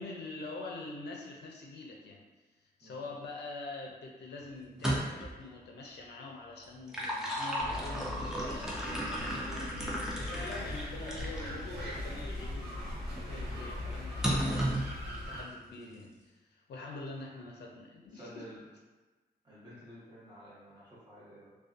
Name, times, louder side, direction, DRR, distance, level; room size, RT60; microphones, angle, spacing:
voice 1, 0.0-2.2 2.6-14.7 15.2-18.5, left 3 dB, 80° left, -1 dB, 0.5 m, -45 dB
voice 2, 2.8-3.1 17.2-17.3 18.1-18.7 19.4-21.6, equal, 25° right, -9 dB, 0.9 m, -52 dB
sound 1, 4.7-5.4 6.6-11.5 12.1-12.2 14.2-14.9, equal, 5° right, 0.4 m, -34 dB
sound 2, 7.6-15.4, left 1 dB, 75° right, 1.2 m, -40 dB
2.5 x 2.2 x 2.5 m, 1.3 s
wide cardioid pair, 155°, 17 cm